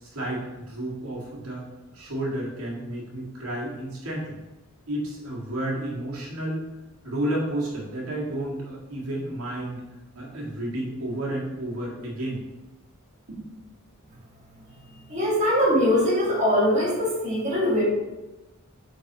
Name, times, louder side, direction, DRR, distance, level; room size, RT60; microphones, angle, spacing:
voice 1, 0.0-1.7 1.9-4.4 4.9-6.6 7.0-9.8 10.2-12.4 13.3-13.5, right 1 dB, 80° right, -5 dB, 2.0 m, -31 dB
voice 2, 15.1-17.8, equal, 35° right, -6 dB, 1.9 m, -22 dB
9.0 x 4.5 x 3.0 m, 1.1 s
head